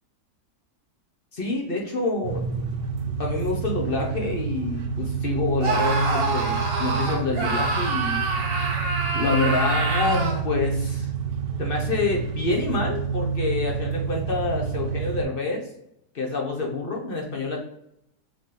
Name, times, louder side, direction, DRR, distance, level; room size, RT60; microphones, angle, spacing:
voice 1, 1.3-2.5 3.2-8.2 9.1-11.1 11.6-15.6 16.1-17.6, left 3 dB, 45° left, 0 dB, 0.8 m, -27 dB
sound 1, 2.2-15.2, right 6 dB, 85° right, 1.3 m, -28 dB
Screaming, 5.6-10.4, right 3 dB, 45° right, 0.9 m, -26 dB
4.1 x 3.5 x 3.2 m, 0.77 s
omnidirectional pair, 1.8 m